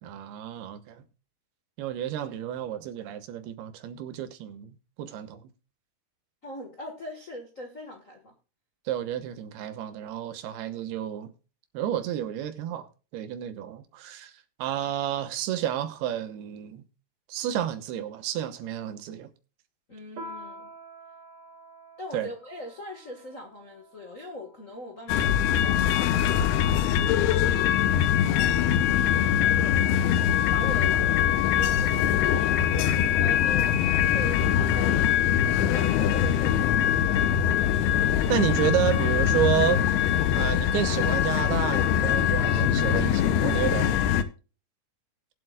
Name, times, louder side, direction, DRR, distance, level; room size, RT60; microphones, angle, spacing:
voice 1, 0.0-1.0 1.8-5.4 8.9-11.3 11.7-12.9 13.1-14.3 14.6-16.9 17.3-19.3 22.1-22.3 38.3-39.8 40.3-44.0, right 11 dB, 85° right, 3.0 m, -30 dB
voice 2, 6.4-8.3 19.9-20.7 22.0-27.7 28.2-30.0 30.5-32.5 33.0-37.5, left 1 dB, 55° left, 0.8 m, -41 dB
Piano, 20.2-25.1, right 1 dB, 50° right, 1.6 m, -47 dB
sound 1, 25.1-44.2, left 9 dB, 85° left, 2.7 m, -23 dB
21.0 x 7.7 x 2.4 m
omnidirectional pair, 4.5 m